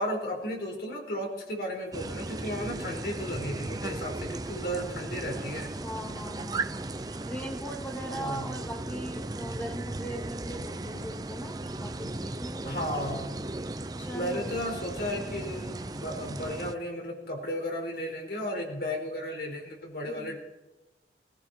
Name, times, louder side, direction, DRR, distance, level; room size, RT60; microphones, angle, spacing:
voice 1, 0.0-5.7 8.1-8.6 12.6-13.3 14.1-20.4, equal, 60° left, 0 dB, 4.7 m, -34 dB
sound 1, 1.9-16.7, right 2 dB, 20° right, 0.6 m, -36 dB
voice 2, 5.8-12.8 14.0-14.5 14.9-15.4 20.1-20.4, right 1 dB, 10° left, 1 dB, 2.2 m, -40 dB
19.0 x 15.0 x 4.5 m, 1.0 s
head